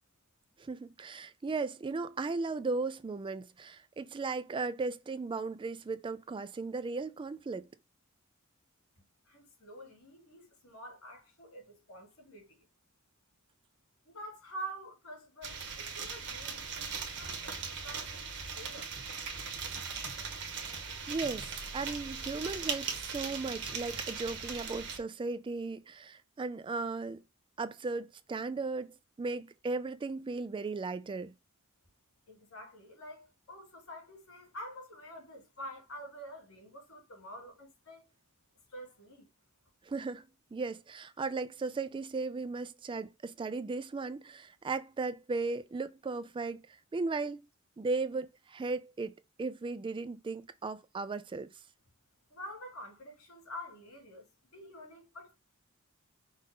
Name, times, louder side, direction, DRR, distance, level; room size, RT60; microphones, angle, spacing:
voice 1, 0.6-7.7 20.6-20.8 21.1-21.5 21.7-27.2 27.6-31.3 39.8-47.4 47.8-49.1 49.4-51.5, right 3 dB, 25° right, 0.3 m, -36 dB
voice 2, 9.3-12.6 14.0-18.9 32.3-38.1 38.7-39.3 52.3-55.3, equal, 85° left, 3.4 m, -47 dB
sound 1, 15.4-25.0, right 5 dB, 55° right, 1.2 m, -39 dB
5.5 x 2.5 x 3.8 m
head